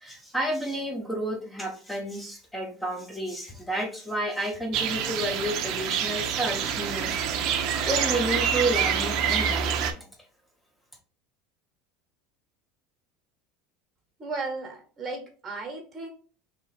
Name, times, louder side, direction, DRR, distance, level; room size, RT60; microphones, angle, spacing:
voice 1, 0.0-7.2 7.9-10.1, right 1 dB, 5° left, 2 dB, 0.8 m, -31 dB
sound 1, 4.7-9.9, right 8 dB, 55° right, 0.5 m, -27 dB
voice 2, 14.2-16.1, right 3 dB, 20° right, 3 dB, 1.1 m, -35 dB
2.9 x 2.7 x 4.1 m, 0.40 s
supercardioid pair, 125°, 0 cm